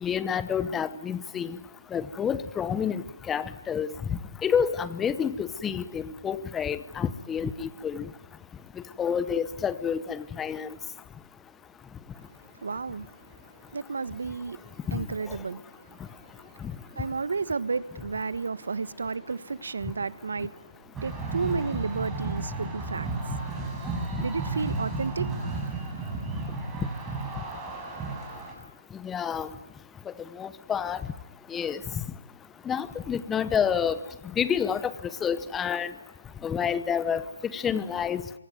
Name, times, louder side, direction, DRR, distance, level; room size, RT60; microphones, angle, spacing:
voice 1, 0.0-1.6 1.9-8.1 9.0-10.7 14.9-15.4 16.6-16.7 29.0-29.5 30.1-31.0 31.5-31.8 32.7-34.0 34.4-34.9 35.2-35.9 36.4-38.4, left 7 dB, 10° left, 1.0 m, -29 dB
voice 2, 12.6-13.3 13.7-14.6 14.9-16.0 16.4-20.6 21.0-23.1 24.2-25.3, right 4 dB, 65° right, 1.3 m, -32 dB
sound 1, 21.0-28.5, right 3 dB, 10° right, 6.7 m, -33 dB
26.0 x 24.0 x 9.4 m
figure-of-eight pair, 155°, 0 cm